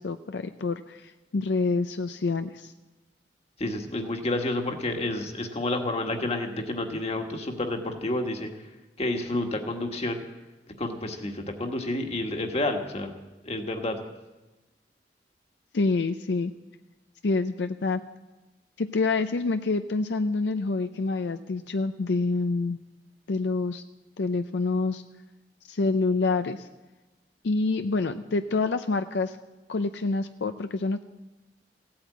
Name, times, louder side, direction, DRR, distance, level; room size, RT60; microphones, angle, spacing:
voice 1, 0.0-2.7 15.7-16.5 17.2-18.0 18.8-22.8 23.3-23.8 24.2-25.0 25.7-26.7 27.4-29.4 29.7-31.0, left 3 dB, 80° left, 9 dB, 0.5 m, -27 dB
voice 2, 3.6-8.5 9.0-10.2 10.8-13.1 13.4-14.0, left 2 dB, 35° left, 4 dB, 1.6 m, -29 dB
16.0 x 8.7 x 8.3 m, 1.1 s
head